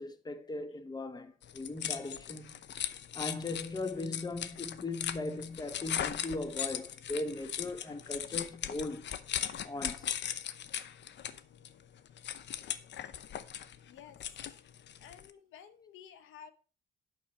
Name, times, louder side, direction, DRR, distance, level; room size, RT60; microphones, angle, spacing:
voice 1, 0.0-2.5 3.1-9.1 9.6-10.1, left 2 dB, 20° left, 1.3 m, -38 dB
sound 1, 1.4-15.3, left 10 dB, 65° left, 0.8 m, -39 dB
voice 2, 13.9-14.4 15.0-16.5, left 8 dB, 85° left, 1.0 m, -53 dB
9.0 x 6.1 x 5.5 m
cardioid pair, 90°, 20 cm